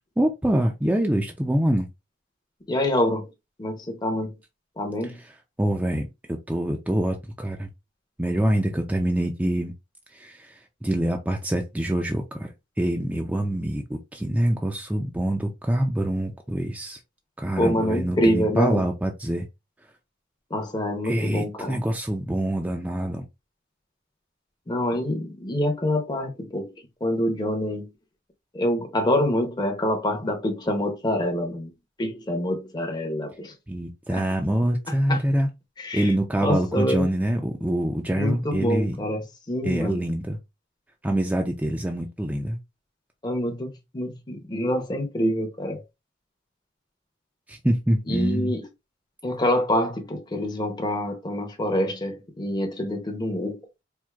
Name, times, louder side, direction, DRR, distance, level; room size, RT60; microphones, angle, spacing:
voice 1, 0.2-1.9 5.6-7.7 8.2-9.7 10.1-17.0 17.4-19.5 21.0-23.2 33.7-35.5 35.9-39.0 39.6-40.4 41.0-42.6 47.5-48.5, right 1 dB, 10° right, 0.4 m, -25 dB
voice 2, 2.7-3.3 3.6-4.3 4.8-5.2 17.6-18.9 20.5-21.8 24.7-26.7 27.0-27.9 28.5-31.7 32.0-33.5 34.1-34.2 35.1-35.2 35.8-36.1 36.4-37.1 38.1-40.0 43.2-45.8 48.1-48.7 49.2-53.6, left 1 dB, 25° left, 0.7 m, -26 dB
4.5 x 2.5 x 2.3 m
head